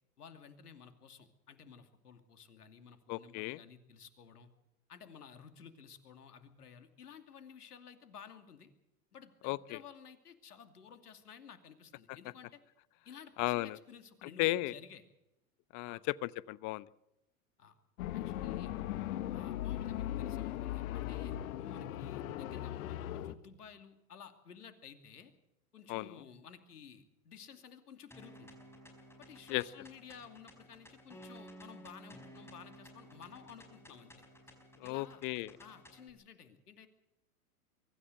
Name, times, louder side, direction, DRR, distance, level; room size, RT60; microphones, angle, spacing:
voice 1, 0.2-4.5 4.9-8.7 9.1-12.6 13.0-15.0 15.9-16.0 17.6-17.7 18.1-18.7 19.3-25.3 25.7-28.5 29.2-34.2 34.8-35.2 35.6-36.9, left 7 dB, 90° left, 8 dB, 2.7 m, -54 dB
voice 2, 3.1-3.6 9.4-9.8 13.4-13.8 14.4-14.7 15.7-16.9 25.9-26.2 29.5-29.6 34.8-35.5, left 19 dB, 40° left, 19 dB, 0.9 m, -35 dB
sound 1, 18.0-23.3, left 12 dB, 65° left, 1.5 m, -38 dB
sound 2, 28.1-36.1, equal, 5° left, 5.2 m, -55 dB
23.5 x 14.0 x 7.9 m, 0.88 s
hypercardioid pair, 105°, 45 cm